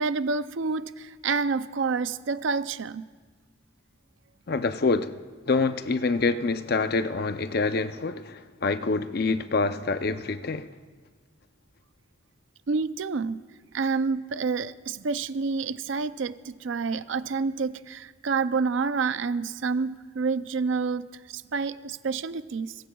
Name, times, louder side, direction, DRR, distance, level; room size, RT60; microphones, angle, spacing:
voice 1, 0.0-3.1 12.7-13.4 13.7-22.7, right 4 dB, 65° right, 0.5 m, -28 dB
voice 2, 4.5-5.1 5.5-10.7, left 3 dB, 50° left, 0.5 m, -26 dB
25.0 x 23.0 x 2.3 m
head